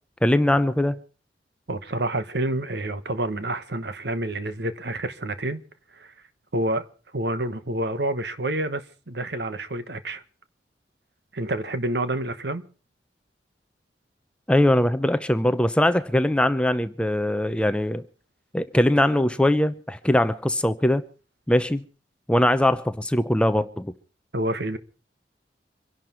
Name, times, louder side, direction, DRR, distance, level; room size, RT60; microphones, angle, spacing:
voice 1, 0.2-1.0 14.5-18.0 18.5-21.0 21.5-21.8 22.3-23.9, left 1 dB, 5° left, 0.7 m, -21 dB
voice 2, 1.7-5.6 5.9-6.1 6.5-6.9 7.1-10.2 11.3-12.7 24.3-24.8, right 1 dB, 65° right, 1.3 m, -28 dB
25.0 x 11.5 x 4.5 m
head